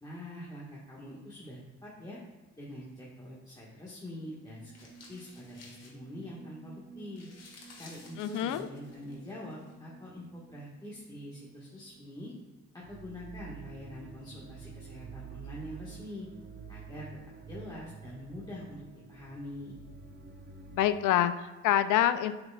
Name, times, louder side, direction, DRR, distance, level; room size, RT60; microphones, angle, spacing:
voice 1, 0.0-2.2 2.5-4.7 5.1-7.3 7.7-12.3 12.7-16.3 16.7-17.1 17.5-19.8, left 1 dB, 15° left, -6 dB, 1.4 m, -44 dB
sound 1, 4.2-11.5 11.9-12.3 12.8-20.9, right 5 dB, 35° right, 0.8 m, -50 dB
sound 2, 4.7-6.4 6.7-6.8 7.0-9.7, left 3 dB, 55° left, 1.7 m, -54 dB
voice 2, 8.2-8.7 20.7-22.3, left 11 dB, 80° left, 12 dB, 0.5 m, -26 dB
7.6 x 5.8 x 2.3 m, 1.2 s
cardioid pair, 90°, 30 cm